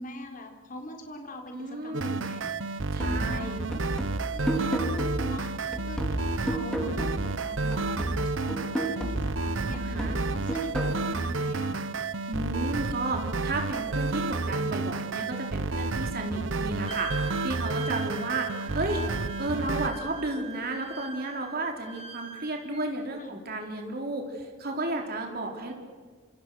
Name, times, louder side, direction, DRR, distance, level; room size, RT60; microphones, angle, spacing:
voice 1, 0.0-2.6 2.9-3.5 4.3-5.6 5.8-11.8 23.2-23.4, equal, 40° left, 4 dB, 4.1 m, -42 dB
voice 2, 1.5-2.2 2.9-3.6 9.8-10.2 12.3-19.0 19.4-25.7, right 2 dB, 50° right, 2 dB, 3.9 m, -33 dB
sound 1, 1.9-19.9, right 3 dB, 70° right, 1.0 m, -31 dB
sound 2, 3.0-7.4 7.7-11.0, equal, 5° left, 3.4 m, -33 dB
Wind instrument woodwind instrument, 16.9-22.9, right 3 dB, 30° right, 1.8 m, -42 dB
27.0 x 27.0 x 6.4 m, 1.5 s
head